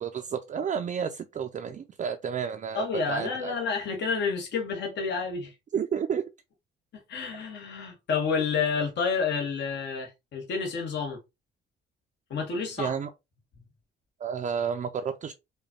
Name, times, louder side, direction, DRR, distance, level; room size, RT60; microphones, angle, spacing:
voice 1, 0.0-3.5 5.7-6.2 12.8-13.1 14.2-15.3, right 7 dB, 40° right, 0.4 m, -31 dB
voice 2, 2.7-5.5 7.1-11.2 12.3-12.9, left 5 dB, 60° left, 1.2 m, -29 dB
5.1 x 2.2 x 2.8 m
cardioid pair, 90°, 20 cm